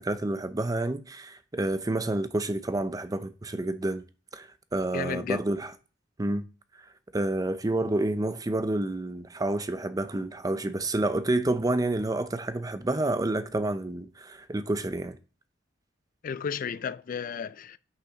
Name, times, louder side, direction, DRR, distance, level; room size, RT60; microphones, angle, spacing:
voice 1, 0.0-4.0 4.3-5.7 6.2-6.4 7.1-15.2, right 2 dB, 20° right, 0.6 m, -29 dB
voice 2, 4.9-5.4 16.2-17.8, left 6 dB, 45° left, 0.3 m, -33 dB
6.1 x 5.8 x 5.1 m
head